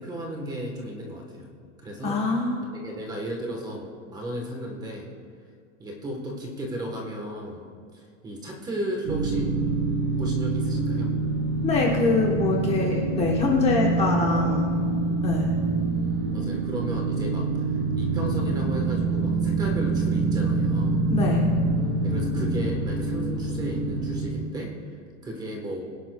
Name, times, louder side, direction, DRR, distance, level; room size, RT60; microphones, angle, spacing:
voice 1, 0.0-1.5 1.8-2.2 2.6-5.1 5.8-7.6 7.9-9.5 10.2-11.2 16.3-21.0 22.0-24.7 25.2-25.8, equal, 10° right, 0 dB, 1.1 m, -34 dB
voice 2, 2.0-2.6 11.6-14.7 15.2-15.5 21.1-21.5, left 4 dB, 15° left, -1 dB, 1.0 m, -24 dB
sound 1, 9.1-24.3, right 3 dB, 45° right, 3.0 m, -25 dB
22.5 x 11.0 x 2.2 m, 2.3 s
supercardioid pair, 170°, 38 cm